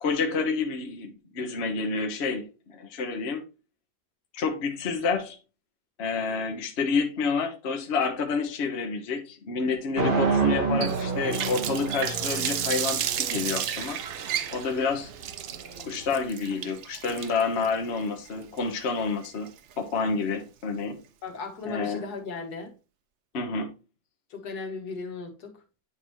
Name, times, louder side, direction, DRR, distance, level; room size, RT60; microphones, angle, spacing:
voice 1, 0.0-3.4 4.3-5.4 6.0-14.0 14.5-15.1 15.8-19.5 19.8-20.9 21.7-22.0 23.3-23.7, left 4 dB, 45° left, 1.1 m, -29 dB
sound 1, 10.0-16.0, right 4 dB, 35° right, 1.3 m, -29 dB
Water tap faucet, 10.8-19.7, right 10 dB, 80° right, 0.6 m, -33 dB
voice 2, 21.2-22.7 24.3-25.6, left 4 dB, 70° left, 1.8 m, -36 dB
9.6 x 3.9 x 3.0 m
omnidirectional pair, 1.8 m